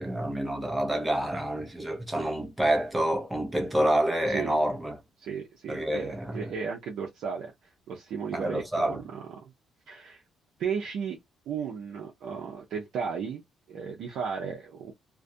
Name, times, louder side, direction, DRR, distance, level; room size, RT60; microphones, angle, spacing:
voice 1, 0.0-5.0 5.7-6.5 8.3-9.0, right 1 dB, 10° right, 0.6 m, -28 dB
voice 2, 5.2-7.5 7.9-9.2 9.9-10.2 10.6-11.2 11.5-13.4 13.7-14.9, right 6 dB, 65° right, 0.6 m, -34 dB
2.3 x 2.1 x 2.5 m
cardioid pair, 150°, 0 cm